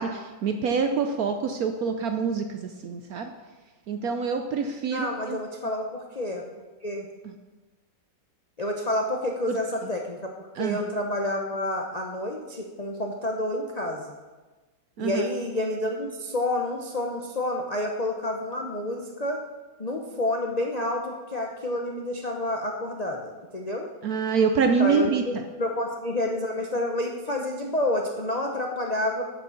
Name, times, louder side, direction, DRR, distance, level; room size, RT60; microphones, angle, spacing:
voice 1, 0.0-3.3 3.9-5.4 9.5-9.6 10.6-10.8 15.0-15.2 24.0-25.2, right 5 dB, 70° right, 6 dB, 0.9 m, -26 dB
voice 2, 4.9-6.4 6.8-7.1 8.6-10.3 10.6-14.1 15.0-19.4 19.8-23.9 24.8-29.2, left 1 dB, 55° left, 1 dB, 0.4 m, -29 dB
8.3 x 6.1 x 6.9 m, 1.2 s
omnidirectional pair, 2.1 m